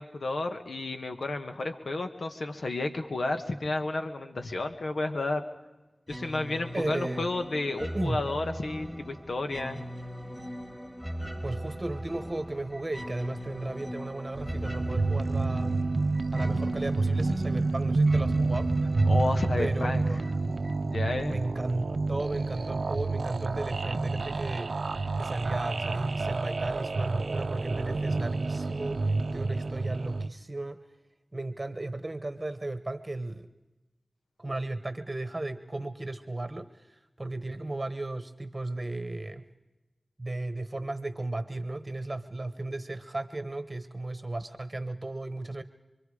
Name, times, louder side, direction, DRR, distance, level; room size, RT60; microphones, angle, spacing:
voice 1, 0.0-5.5 6.1-9.8 19.1-20.0 20.9-21.4, left 2 dB, 85° left, 6 dB, 1.3 m, -32 dB
sound 1, 6.1-21.6, equal, 5° left, 2.1 m, -38 dB
voice 2, 6.7-7.3 7.9-8.2 11.4-15.8 16.3-18.7 19.6-20.3 21.3-24.7 25.2-30.8 31.3-33.5 34.4-39.4 40.2-45.6, right 2 dB, 30° right, 10 dB, 1.0 m, -35 dB
sound 2, 14.4-30.3, right 3 dB, 80° right, 0.6 m, -29 dB
27.0 x 23.0 x 4.9 m, 1.1 s
wide cardioid pair, 85°, 0 cm